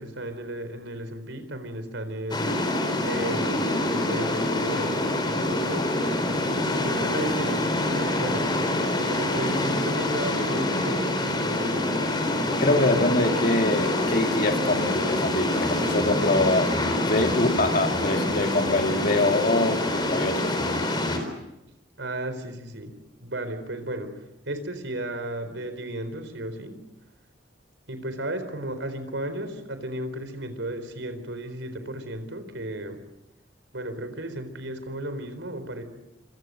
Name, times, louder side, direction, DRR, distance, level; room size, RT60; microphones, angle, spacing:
voice 1, 0.0-2.5 3.0-5.9 6.7-8.5 8.9-12.2 22.0-22.9 23.2-24.1 24.5-26.8 27.9-33.0 33.7-35.8, right 1 dB, 75° right, 4.2 m, -34 dB
sound 1, 2.3-21.2, left 1 dB, 25° left, 4.1 m, -26 dB
voice 2, 12.6-20.6, left 2 dB, 45° left, 2.7 m, -24 dB
sound 2, 13.8-21.3, right 1 dB, 15° right, 1.3 m, -38 dB
27.5 x 26.0 x 6.5 m
head